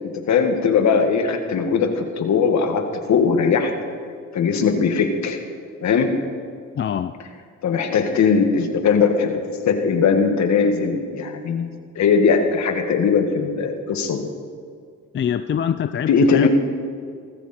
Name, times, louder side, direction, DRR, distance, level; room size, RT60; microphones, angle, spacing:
voice 1, 0.0-3.7 4.3-5.4 5.8-6.2 7.6-14.2 16.1-16.5, left 5 dB, 65° left, 5 dB, 2.0 m, -19 dB
voice 2, 6.8-7.1 15.1-16.5, left 8 dB, 40° left, 11 dB, 0.5 m, -24 dB
19.5 x 14.5 x 4.5 m, 2.1 s
cardioid pair, 90°, 30 cm